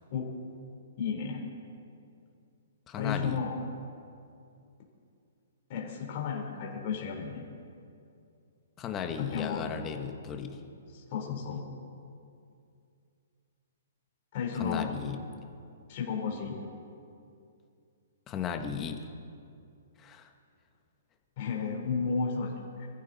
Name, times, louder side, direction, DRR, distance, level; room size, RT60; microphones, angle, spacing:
voice 1, 1.0-1.4 3.0-3.6 5.7-7.4 9.2-9.7 10.9-11.6 14.3-14.9 15.9-16.5 21.4-22.9, left 6 dB, 35° left, -1 dB, 3.3 m, -33 dB
voice 2, 2.9-3.4 8.8-10.6 14.6-15.2 18.3-19.0 20.0-20.3, left 7 dB, 15° left, 6 dB, 0.9 m, -35 dB
25.0 x 14.5 x 3.9 m, 2.5 s
hypercardioid pair, 175°, 0 cm